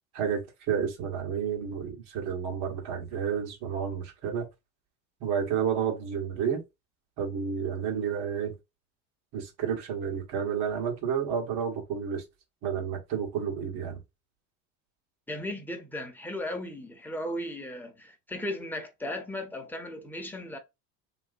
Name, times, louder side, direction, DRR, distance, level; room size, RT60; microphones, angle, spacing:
voice 1, 0.1-4.4 5.2-6.6 7.2-8.6 9.3-12.2 12.6-14.0, right 7 dB, 60° right, 1.6 m, -30 dB
voice 2, 15.3-20.6, left 1 dB, 5° left, 1.1 m, -36 dB
3.1 x 3.0 x 2.5 m
supercardioid pair, 90°, 44 cm